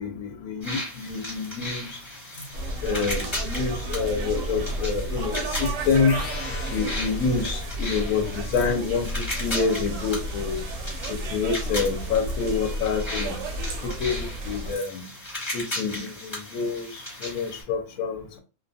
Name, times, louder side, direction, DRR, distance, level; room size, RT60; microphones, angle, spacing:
voice 1, 0.0-1.9 2.8-6.1 6.7-10.6 11.1-13.4 13.8-15.0 15.5-18.4, left 5 dB, 75° left, 1.0 m, -27 dB
sound 1, 0.6-17.6, left 1 dB, 20° left, 1.0 m, -36 dB
sound 2, 2.5-14.8, right 1 dB, 70° right, 0.9 m, -32 dB
sound 3, 6.1-8.0, left 2 dB, 50° left, 0.5 m, -38 dB
2.5 x 2.2 x 2.6 m
omnidirectional pair, 1.5 m